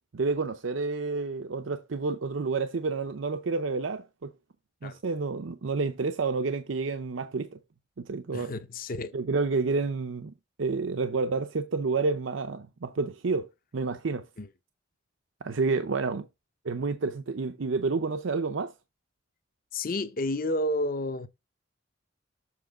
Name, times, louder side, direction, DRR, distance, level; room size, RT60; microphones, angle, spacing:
voice 1, 0.1-4.3 4.8-7.6 8.0-8.5 9.1-14.3 15.4-16.3 16.6-18.7, right 4 dB, 85° right, 0.6 m, -29 dB
voice 2, 8.3-9.1 14.4-14.5 19.7-21.3, left 1 dB, 50° left, 0.7 m, -30 dB
7.5 x 3.5 x 4.9 m
head